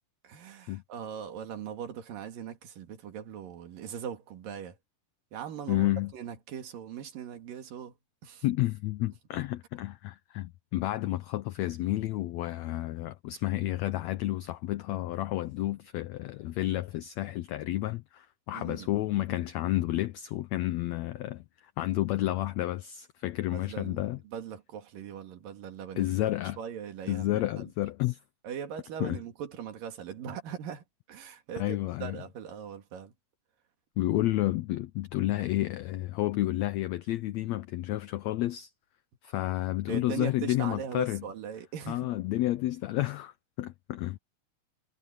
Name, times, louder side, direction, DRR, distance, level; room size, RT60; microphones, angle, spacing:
voice 1, 0.2-4.8 5.3-8.0 8.2-8.5 18.5-18.9 23.5-27.7 28.4-33.1 39.9-42.1, right 8 dB, 80° right, 3.8 m, -40 dB
voice 2, 5.7-6.1 8.4-21.4 21.8-24.2 26.0-26.6 27.1-28.2 29.0-29.2 31.6-32.2 34.0-38.7 39.2-41.2 41.9-44.2, left 16 dB, 90° left, 1.5 m, -30 dB
omnidirectional pair, 3.9 m